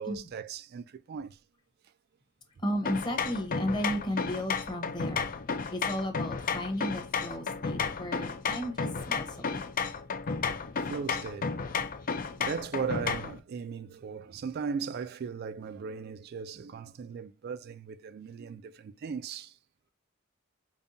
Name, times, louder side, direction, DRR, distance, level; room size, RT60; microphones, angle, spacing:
voice 1, 0.0-1.4 7.7-8.0 10.7-11.8 12.4-19.6, right 6 dB, 50° right, 0.3 m, -38 dB
voice 2, 2.6-5.3 5.7-9.6, equal, 20° left, 1.0 m, -34 dB
sound 1, 2.9-13.4, left 5 dB, 45° left, 0.5 m, -33 dB
5.2 x 2.3 x 2.6 m
head